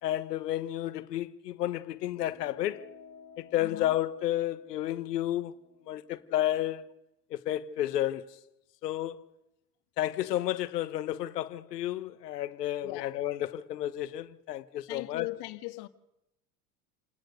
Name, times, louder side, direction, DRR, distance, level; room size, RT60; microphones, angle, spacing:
voice 1, 0.0-2.8 3.4-5.5 5.9-6.8 7.3-8.3 8.8-9.2 10.0-15.3, left 13 dB, 75° left, 1.3 m, -31 dB
sound 1, 2.1-6.9, left 5 dB, 30° left, 3.4 m, -55 dB
voice 2, 3.6-3.9 12.8-13.1 14.9-15.9, left 20 dB, 55° left, 1.7 m, -39 dB
29.5 x 19.5 x 6.7 m
figure-of-eight pair, 70°, 48 cm